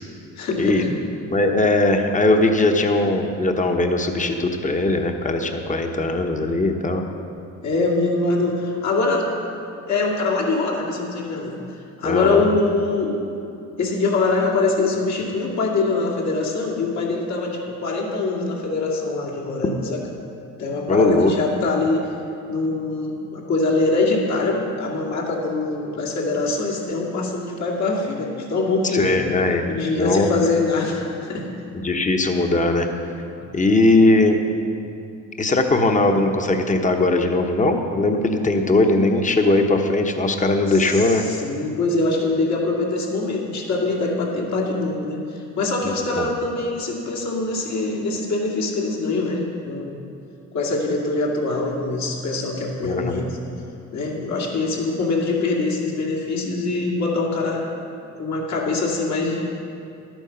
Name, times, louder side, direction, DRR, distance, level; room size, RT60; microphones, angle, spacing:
voice 1, 0.4-0.9 7.6-9.3 9.9-11.7 12.0-13.2 13.8-20.0 20.6-22.0 22.5-29.2 29.7-31.5 33.4-33.5 40.7-50.0 50.5-53.4 53.9-57.7 58.2-59.5, left 3 dB, 70° left, -2 dB, 2.3 m, -23 dB
voice 2, 1.3-7.0 12.0-12.4 20.9-21.3 28.9-29.6 30.0-30.3 31.7-32.9 33.5-34.4 35.4-41.3 46.2-46.3 52.8-53.2, left 2 dB, 25° left, 4 dB, 1.1 m, -19 dB
12.0 x 9.1 x 5.7 m, 2.7 s
cardioid pair, 90°, 30 cm